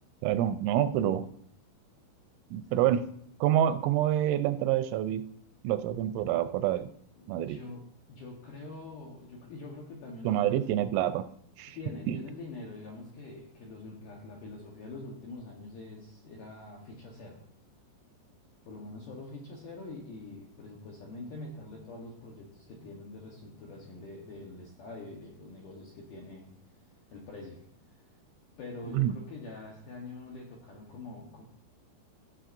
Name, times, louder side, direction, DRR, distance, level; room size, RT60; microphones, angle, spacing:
voice 1, 0.2-1.3 2.5-3.0 3.4-5.3 5.6-6.9 7.3-7.6 10.2-11.2 11.6-11.8 12.1-12.2 28.9-29.1, right 11 dB, 90° right, 11 dB, 3.1 m, -27 dB
voice 2, 7.2-7.8 8.1-10.9 11.7-17.4 18.6-26.5 27.1-27.6 28.6-31.4, left 2 dB, 70° left, -2 dB, 2.0 m, -45 dB
16.0 x 7.3 x 2.6 m, 0.67 s
omnidirectional pair, 5.4 m